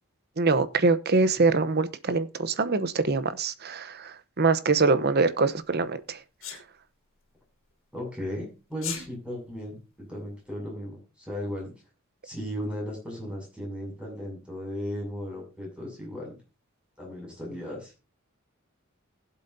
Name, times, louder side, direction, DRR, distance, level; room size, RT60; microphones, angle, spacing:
voice 1, 0.4-6.2, right 4 dB, 50° right, 0.9 m, -24 dB
Sneeze, 6.4-6.6 8.7-9.0, left 8 dB, 65° left, 3.3 m, -34 dB
voice 2, 7.9-9.8 10.1-11.7 12.2-16.4 17.0-17.9, equal, 5° right, 7.0 m, -36 dB
20.0 x 7.8 x 2.7 m
head